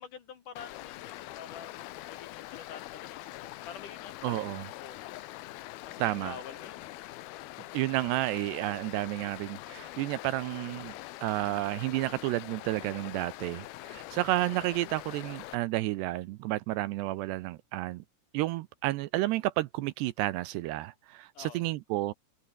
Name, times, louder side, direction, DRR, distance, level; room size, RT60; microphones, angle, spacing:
voice 1, 0.0-5.3 5.8-6.9 21.3-21.7, left 7 dB, 55° left, 2.9 m, -48 dB
Stream, 0.6-15.6, left 17 dB, 75° left, 2.4 m, -44 dB
voice 2, 4.2-4.7 6.0-6.4 7.7-10.9 11.2-18.0 18.3-22.1, right 17 dB, 80° right, 2.7 m, -31 dB
omnidirectional pair, 5.2 m